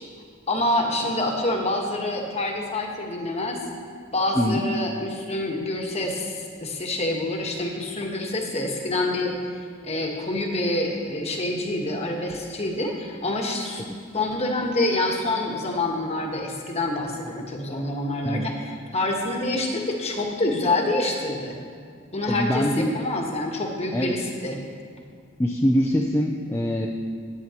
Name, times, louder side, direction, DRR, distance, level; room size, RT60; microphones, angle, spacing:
voice 1, 0.5-3.6 4.1-9.3 9.8-13.8 14.1-21.6 22.1-24.6, left 2 dB, 30° left, 1 dB, 1.2 m, -27 dB
voice 2, 4.4-4.7 13.8-13.9 18.2-18.5 22.3-23.0 23.9-24.2 25.4-26.9, equal, 10° left, 0 dB, 0.4 m, -23 dB
15.5 x 9.3 x 2.9 m, 2.1 s
head